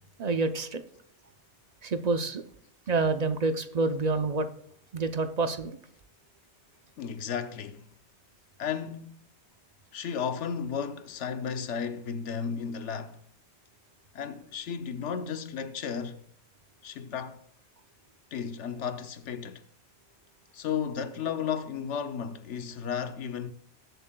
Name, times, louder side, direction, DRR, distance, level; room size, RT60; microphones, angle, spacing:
voice 1, 0.2-0.8 1.8-2.4 2.9-4.5 4.9-5.7, right 3 dB, 45° right, 0.6 m, -27 dB
voice 2, 7.0-7.8 8.6-9.2 9.9-13.2 14.1-16.2 16.8-17.4 18.3-19.7 20.5-23.5, left 7 dB, 85° left, 1.0 m, -34 dB
19.5 x 7.3 x 2.3 m
omnidirectional pair, 1.2 m